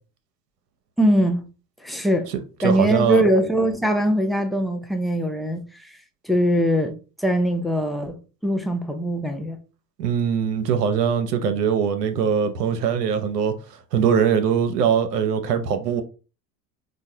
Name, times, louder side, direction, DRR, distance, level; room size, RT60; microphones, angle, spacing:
voice 1, 1.0-1.4 1.8-2.3 2.6-5.9 6.2-8.2 8.4-9.6, equal, ahead, 0.4 m, -22 dB
voice 2, 2.6-3.2 10.0-13.5 13.9-16.0, right 7 dB, 90° right, 0.6 m, -21 dB
4.6 x 2.2 x 2.7 m
hypercardioid pair, 75°, 47 cm